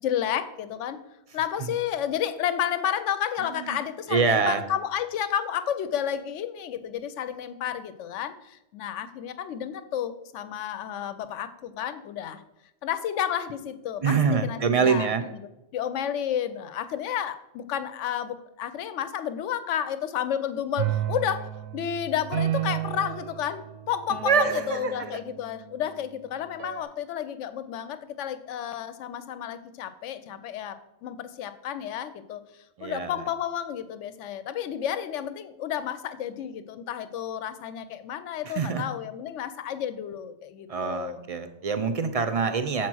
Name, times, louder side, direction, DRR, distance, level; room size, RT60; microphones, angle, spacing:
voice 1, 0.0-1.0 1.3-12.4 12.8-15.1 15.7-30.8 31.0-32.4 32.8-41.2, left 9 dB, 85° left, 12 dB, 0.9 m, -31 dB
voice 2, 4.1-4.6 14.0-15.2 24.2-25.1 32.8-33.2 38.5-38.8 40.7-42.9, right 5 dB, 45° right, 10 dB, 0.5 m, -25 dB
sound 1, 20.8-25.8 26.6-26.8, right 12 dB, 70° right, 0.8 m, -32 dB
7.3 x 4.5 x 6.1 m, 0.89 s
omnidirectional pair, 1.2 m